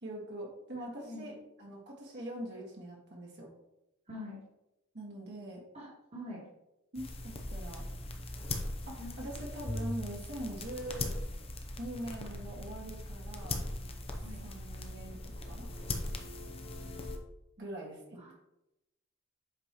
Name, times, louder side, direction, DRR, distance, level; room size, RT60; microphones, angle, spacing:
voice 1, 0.0-1.3 1.6-3.5 4.9-5.6 6.9-7.8 8.9-11.1 11.8-13.7 14.1-15.2 15.5-15.7 17.6-18.3, right 1 dB, 50° right, -2 dB, 1.7 m, -43 dB
voice 2, 4.1-4.4 5.7-6.4 9.0-9.1 14.2-14.4 18.2-18.3, left 1 dB, 30° right, -4 dB, 1.6 m, -44 dB
sound 1, 6.9-17.2, left 2 dB, 25° left, 0.7 m, -39 dB
8.0 x 5.4 x 3.0 m, 0.89 s
head